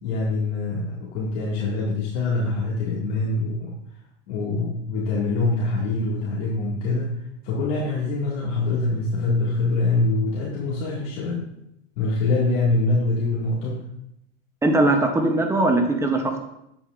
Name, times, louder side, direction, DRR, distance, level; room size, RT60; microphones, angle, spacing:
voice 1, 0.0-3.7 4.3-7.1 7.4-11.5 12.0-13.8, left 2 dB, 60° left, -5 dB, 2.0 m, -24 dB
voice 2, 14.6-16.4, right 2 dB, 10° right, 4 dB, 0.6 m, -20 dB
8.4 x 7.8 x 2.4 m, 0.79 s
supercardioid pair, 140°, 36 cm